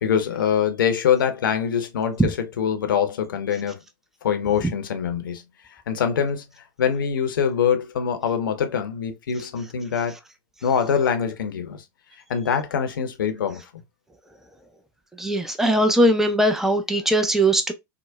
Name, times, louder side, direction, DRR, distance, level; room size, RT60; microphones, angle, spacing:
voice 1, 0.0-3.8 4.2-5.4 5.9-6.4 6.8-10.2 10.6-11.8 12.3-13.6, left 7 dB, 80° left, 0.6 m, -24 dB
voice 2, 15.2-17.7, right 1 dB, 5° right, 0.5 m, -20 dB
4.5 x 2.1 x 2.2 m
hypercardioid pair, 85°, 11 cm